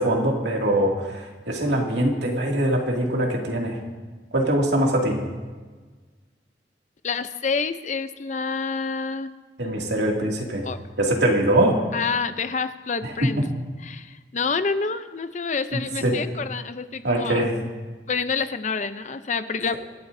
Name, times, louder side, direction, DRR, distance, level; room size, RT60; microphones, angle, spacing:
voice 1, 0.0-3.8 4.3-5.2 9.6-10.6 11.0-11.8 13.0-13.4 15.7-16.2 17.0-17.5, right 1 dB, 85° right, -1 dB, 2.4 m, -22 dB
voice 2, 7.0-9.3 10.6-10.8 11.9-13.5 13.8-17.6 18.1-19.7, left 5 dB, 45° left, 11 dB, 0.6 m, -28 dB
25.5 x 12.0 x 2.7 m, 1.4 s
head